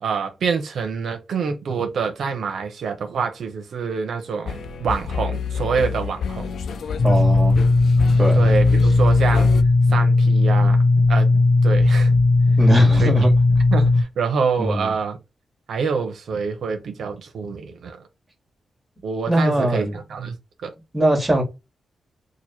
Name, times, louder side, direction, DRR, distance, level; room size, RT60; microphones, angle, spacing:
voice 1, 0.0-6.5 8.4-9.5 9.9-10.8 11.1-11.3 11.6-12.1 13.0-13.1 13.7-15.2 15.7-18.0 19.0-20.4 20.6-20.7, right 5 dB, 80° right, 0.7 m, -26 dB
sound 1, 4.5-9.6, left 6 dB, 80° left, 0.4 m, -28 dB
sound 2, 7.0-14.0, left 3 dB, 55° left, 0.7 m, -16 dB
voice 2, 7.0-7.6 8.2-8.4 12.6-13.3 14.6-14.9 19.3-20.0 20.9-21.4, right 1 dB, 10° right, 1.6 m, -20 dB
3.0 x 2.5 x 4.3 m
cardioid pair, 95°, 0 cm